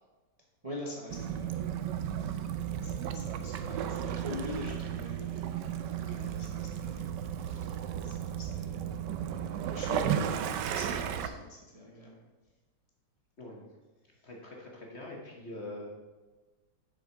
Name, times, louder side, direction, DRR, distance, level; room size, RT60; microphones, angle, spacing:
voice 1, 0.6-1.8 2.2-2.4 2.8-12.2, left 1 dB, 25° right, -2 dB, 1.1 m, -44 dB
Waves surf / Splash splatter / Trickle dribble, 1.1-11.3, right 9 dB, 80° right, 1.2 m, -34 dB
voice 2, 13.4-13.7 14.2-15.9, left 1 dB, 40° left, 0 dB, 1.4 m, -43 dB
7.6 x 6.6 x 4.5 m, 1.2 s
omnidirectional pair, 1.9 m